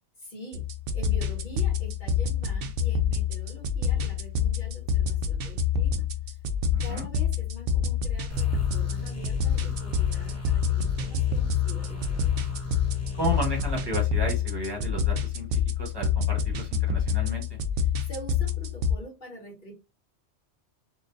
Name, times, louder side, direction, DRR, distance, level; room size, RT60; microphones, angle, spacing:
voice 1, 0.2-0.6 0.9-6.4 6.8-12.5 17.7-19.7, right 1 dB, 45° left, -1 dB, 1.5 m, -45 dB
sound 1, 0.5-18.9, left 6 dB, 65° right, 0.7 m, -27 dB
voice 2, 6.7-7.1 13.1-17.4, left 1 dB, 25° right, -1 dB, 1.1 m, -33 dB
sound 2, 8.3-13.9, left 1 dB, 15° left, 0.7 m, -37 dB
3.6 x 2.5 x 2.6 m, 0.26 s
omnidirectional pair, 1.1 m